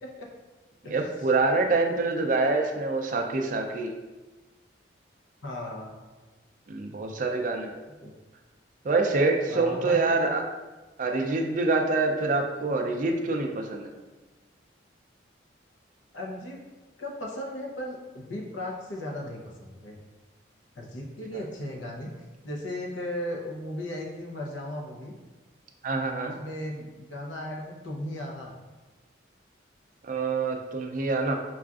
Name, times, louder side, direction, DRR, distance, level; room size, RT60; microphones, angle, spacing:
voice 1, 0.9-3.9 6.7-7.7 8.8-10.4 11.0-13.9 25.8-26.3 30.0-31.4, right 3 dB, 40° right, 3 dB, 0.3 m, -26 dB
voice 2, 5.4-5.9 8.0-8.1 9.5-10.3 16.1-16.6 17.0-20.0 20.7-22.1 22.4-25.1 26.2-28.5, left 1 dB, 80° left, -1 dB, 0.7 m, -36 dB
5.4 x 2.4 x 2.4 m, 1.2 s
head